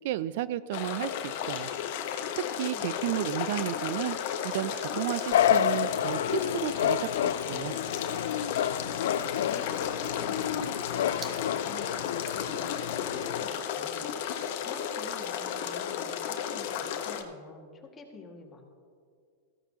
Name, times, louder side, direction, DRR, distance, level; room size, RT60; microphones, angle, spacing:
voice 1, 0.0-1.7 2.3-4.2 4.4-7.8, right 13 dB, 65° right, 17 dB, 0.3 m, -33 dB
sound 1, 0.7-17.2, left 8 dB, 60° left, 1.0 m, -34 dB
voice 2, 2.7-3.5 9.4-14.1 14.6-18.6, left 4 dB, 25° left, 1 dB, 1.9 m, -48 dB
Splash splatter / Trickle dribble, 4.8-13.1, right 3 dB, 20° right, 1.2 m, -52 dB
sound 2, 5.3-13.5, left 10 dB, 75° left, 0.3 m, -29 dB
14.5 x 14.0 x 2.8 m, 2.2 s
hypercardioid pair, 115°, 0 cm